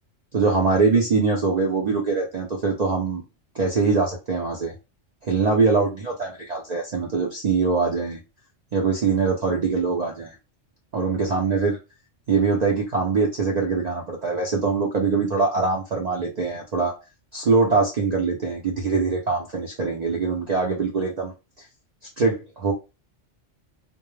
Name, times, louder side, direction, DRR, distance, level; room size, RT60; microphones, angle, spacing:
voice 1, 0.3-3.2 3.5-4.7 5.2-8.2 8.7-10.3 10.9-11.8 12.3-16.9 17.3-21.3 22.2-22.7, right 4 dB, 70° right, -1 dB, 0.4 m, -23 dB
2.2 x 2.0 x 3.0 m, 0.28 s
omnidirectional pair, 1.3 m